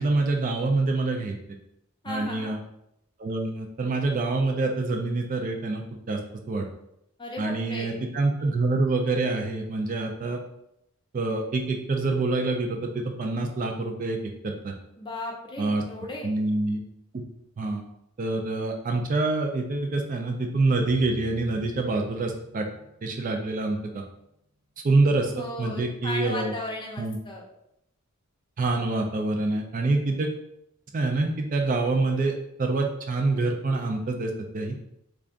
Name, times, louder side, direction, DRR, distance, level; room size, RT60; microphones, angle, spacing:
voice 1, 0.0-1.4 2.1-2.6 3.2-6.2 6.5-6.6 7.4-10.4 11.1-14.2 14.4-14.7 15.6-15.8 16.2-16.8 17.1-17.2 17.6-17.8 18.2-22.7 23.0-24.0 24.8-26.5 27.0-27.2 28.6-30.3 30.9-34.7, right 3 dB, 40° right, 3 dB, 0.3 m, -26 dB
voice 2, 2.0-2.6 7.2-8.0 15.0-16.3 25.2-27.4, left 2 dB, 20° left, -1 dB, 0.6 m, -36 dB
sound 1, 20.9-23.3, right 1 dB, 75° right, 0.8 m, -47 dB
3.4 x 2.4 x 3.7 m, 0.81 s
head